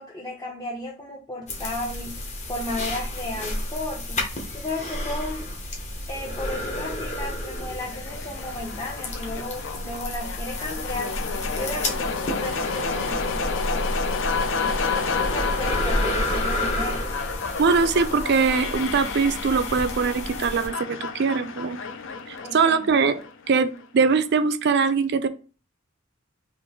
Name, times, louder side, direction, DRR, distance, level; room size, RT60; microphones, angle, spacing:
voice 1, 0.0-2.2 2.5-4.2 4.5-5.5 6.1-11.2 11.5-13.9 14.5-17.1 22.4-22.9, left 1 dB, 20° left, -2 dB, 0.6 m, -34 dB
sound 1, 1.5-20.7, left 1 dB, 35° left, 0.9 m, -31 dB
sound 2, 7.8-23.8, left 5 dB, 65° left, 0.5 m, -31 dB
voice 2, 17.6-21.8 22.3-23.2 23.5-25.3, right 5 dB, 55° right, 11 dB, 0.4 m, -22 dB
3.7 x 2.5 x 4.4 m, 0.37 s
head